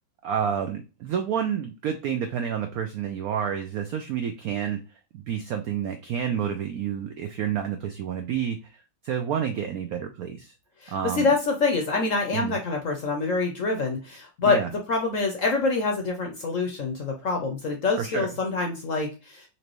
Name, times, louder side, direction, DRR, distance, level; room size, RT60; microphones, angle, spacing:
voice 1, 0.2-4.8 5.1-8.6 9.0-10.5 10.9-11.3 12.3-12.6 14.4-14.7 18.0-18.3, right 8 dB, 85° right, 6 dB, 0.8 m, -29 dB
voice 2, 10.8-19.5, left 3 dB, 60° left, 2 dB, 0.8 m, -26 dB
4.4 x 2.6 x 3.0 m, 0.31 s
omnidirectional pair, 2.1 m